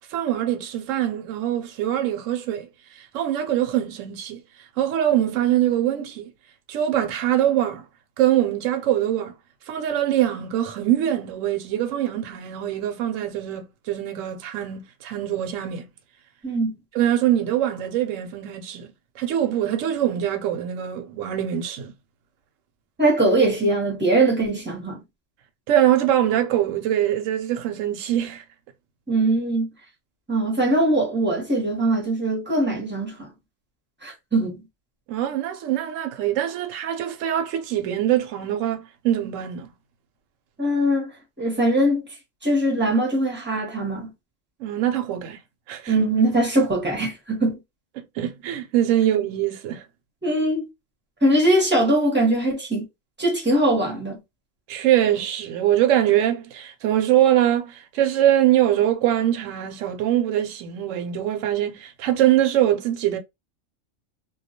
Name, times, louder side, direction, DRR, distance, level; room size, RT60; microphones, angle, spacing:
voice 1, 0.1-2.7 3.0-4.4 4.8-6.3 6.7-7.8 8.2-9.3 9.7-15.8 16.9-18.9 19.2-21.9 25.7-28.4 35.1-39.7 44.6-45.4 45.7-45.9 48.0-49.8 54.7-63.2, right 12 dB, 75° right, 0.9 m, -23 dB
voice 2, 16.4-16.7 23.0-25.0 29.1-29.7 30.3-33.3 34.0-34.6 40.6-41.1 41.4-42.0 42.4-44.1 45.9-47.6 50.2-50.7 51.2-52.9 53.2-54.2, right 1 dB, 10° right, 0.6 m, -21 dB
2.3 x 2.2 x 2.7 m
omnidirectional pair, 1.4 m